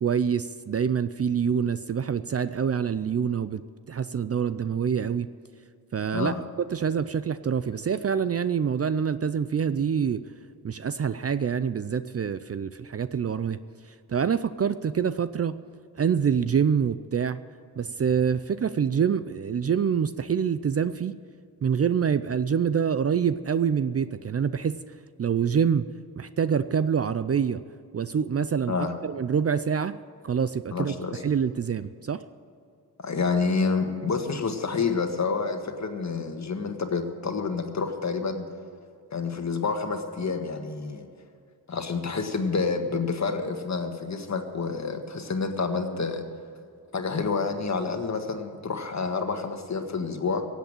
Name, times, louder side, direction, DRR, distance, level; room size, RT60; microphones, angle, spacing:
voice 1, 0.0-3.6 3.9-5.3 5.9-6.3 6.7-10.2 10.6-13.6 14.1-15.6 16.0-17.4 17.8-21.2 21.6-24.8 25.2-25.9 26.2-27.6 27.9-28.7 29.0-30.0 30.2-30.9 31.2-32.2, right 7 dB, 40° right, 13 dB, 0.5 m, -26 dB
voice 2, 30.7-31.2 33.0-38.5 39.1-41.1 41.7-46.2 46.9-50.5, left 4 dB, 45° left, 6 dB, 1.7 m, -28 dB
16.5 x 8.2 x 8.8 m, 2.4 s
cardioid pair, 85°, 39 cm